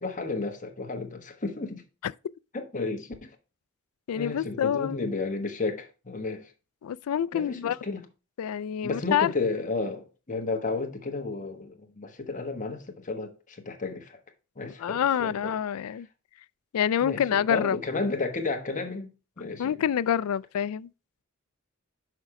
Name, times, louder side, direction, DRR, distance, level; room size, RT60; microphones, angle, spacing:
voice 1, 0.0-1.8 2.5-3.3 4.1-6.5 7.3-8.0 8.8-14.2 14.6-15.5 15.9-16.0 17.0-19.8, left 3 dB, 35° left, 1.3 m, -32 dB
voice 2, 4.1-5.0 6.8-7.8 8.4-9.3 14.6-16.1 16.7-17.8 19.6-20.9, left 9 dB, 75° left, 0.3 m, -27 dB
6.5 x 5.2 x 4.8 m
head